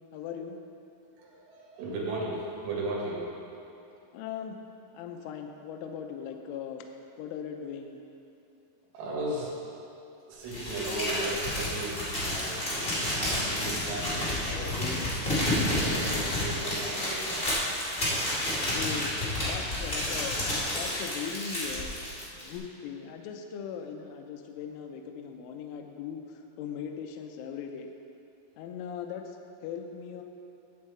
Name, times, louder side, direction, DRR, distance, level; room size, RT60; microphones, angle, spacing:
voice 1, 0.1-0.6 4.1-4.6 4.9-6.8 7.2-8.0 18.6-20.4 20.7-22.0 22.3-27.9 28.6-30.2, left 7 dB, 85° left, 4 dB, 2.9 m, -39 dB
voice 2, 1.2-3.8 8.9-9.5 10.3-15.1 15.4-17.4 22.3-22.5, right 2 dB, 80° right, -5 dB, 4.7 m, -36 dB
Crumpling crinkling, 10.5-22.6, left 1 dB, 40° left, 0.7 m, -30 dB
11.0 x 8.1 x 4.4 m, 2.9 s
omnidirectional pair, 5.9 m